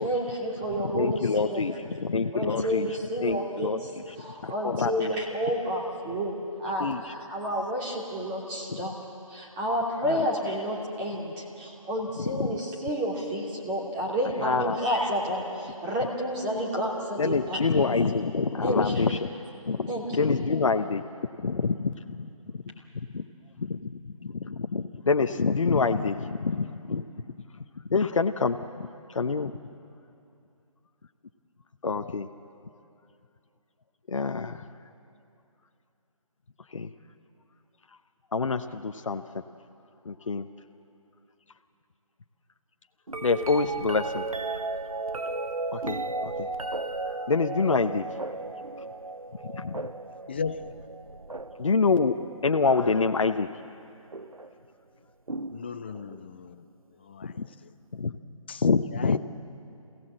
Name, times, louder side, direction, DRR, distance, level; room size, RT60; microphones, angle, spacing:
voice 1, 0.0-1.6 2.3-3.9 4.2-8.9 9.3-17.6 18.6-19.0 19.9-20.3, equal, 15° right, 2.8 m, -30 dB
voice 2, 0.9-2.9 3.2-4.0 4.4-5.2 6.8-7.1 8.7-8.8 10.0-10.3 12.3-12.6 14.4-14.8 17.2-19.3 19.6-21.0 21.4-23.2 23.6-27.0 27.9-29.5 31.8-32.3 34.1-34.6 36.7-36.9 38.3-39.2 40.0-40.5 43.2-44.3 45.7-46.5 47.0-48.0 49.4-49.9 51.6-52.1 52.4-53.5 57.2-57.5 57.9-58.1 58.6-59.2, left 4 dB, 60° left, 0.9 m, -27 dB
sound 1, 43.1-53.2 54.1-54.5 55.3-56.3 58.1-58.2, right 3 dB, 90° right, 1.0 m, -35 dB
voice 3, 50.3-50.7 55.5-56.6 57.0-57.3 58.5-58.6 58.9-59.2, left 5 dB, 20° left, 0.4 m, -36 dB
27.0 x 17.0 x 7.7 m
figure-of-eight pair, 155°, 18 cm